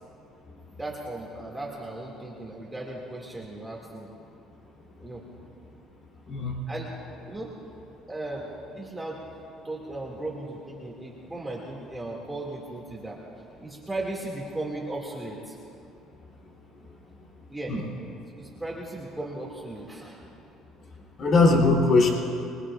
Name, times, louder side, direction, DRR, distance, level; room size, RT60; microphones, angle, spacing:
voice 1, 0.8-4.1 5.0-5.2 6.7-6.9 7.3-7.5 8.1-9.2 9.6-13.2 13.6-15.6 17.5-17.8 18.4-20.2, right 2 dB, 5° right, -4 dB, 2.2 m, -36 dB
voice 2, 6.3-6.6 17.7-17.8 21.2-22.1, left 3 dB, 45° left, -1 dB, 3.2 m, -20 dB
26.5 x 21.0 x 2.5 m, 2.7 s
cardioid pair, 125°, 0 cm